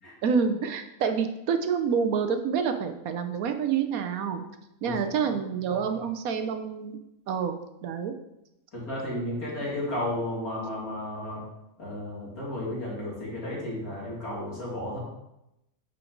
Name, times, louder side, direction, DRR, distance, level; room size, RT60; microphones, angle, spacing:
voice 1, 0.2-4.4 4.8-7.0 7.3-8.1, right 6 dB, 75° right, 7 dB, 1.1 m, -28 dB
voice 2, 8.7-11.4 11.8-15.0, left 1 dB, 70° left, -6 dB, 3.0 m, -33 dB
8.8 x 4.5 x 3.9 m, 0.87 s
omnidirectional pair, 1.6 m